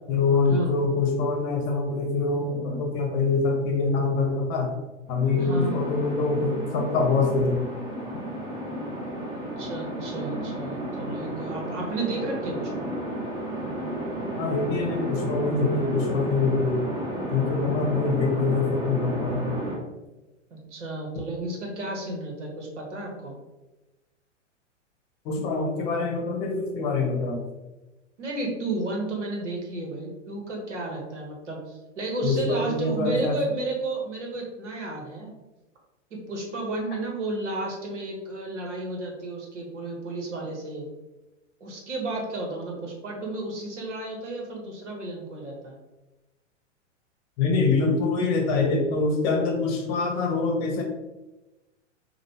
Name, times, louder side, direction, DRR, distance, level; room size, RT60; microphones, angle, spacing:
voice 1, 0.1-4.7 5.1-7.7 14.4-16.9 17.3-19.5 25.2-27.4 32.2-33.4 47.4-50.8, left 3 dB, 35° left, 2 dB, 0.9 m, -24 dB
sound 1, 5.1-19.8, right 1 dB, 10° right, 0.9 m, -32 dB
voice 2, 5.4-5.8 9.3-12.9 20.5-23.3 28.2-35.3 36.3-40.9 41.6-45.8, right 2 dB, 70° right, 0 dB, 1.3 m, -32 dB
5.1 x 2.5 x 2.8 m, 1.1 s
figure-of-eight pair, 100°, 37 cm